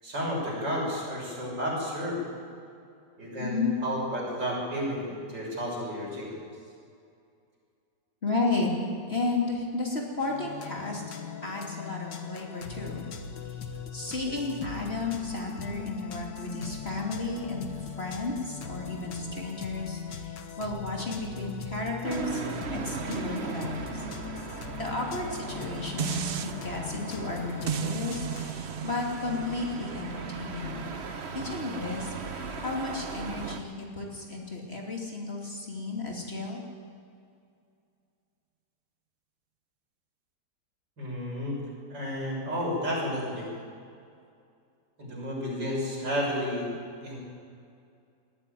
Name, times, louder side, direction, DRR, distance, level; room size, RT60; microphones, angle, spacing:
voice 1, 0.0-2.2 3.2-6.5 41.0-41.6 41.9-43.5 45.0-46.7 47.0-47.2, equal, 80° right, -4 dB, 7.2 m, -32 dB
voice 2, 3.4-3.7 8.2-8.7 9.1-13.1 13.9-17.7 18.0-20.0 20.6-22.4 22.7-24.0 24.8-30.9 31.3-36.6, left 3 dB, 35° left, -1 dB, 3.1 m, -33 dB
sound 1, 10.2-28.5, left 6 dB, 80° left, 2.0 m, -40 dB
sound 2, 22.0-33.6, right 5 dB, 40° right, 1.3 m, -38 dB
sound 3, 26.0-26.5 27.7-32.8 33.3-33.4, right 8 dB, 65° right, 0.5 m, -36 dB
20.5 x 13.5 x 9.3 m, 2.4 s
omnidirectional pair, 1.9 m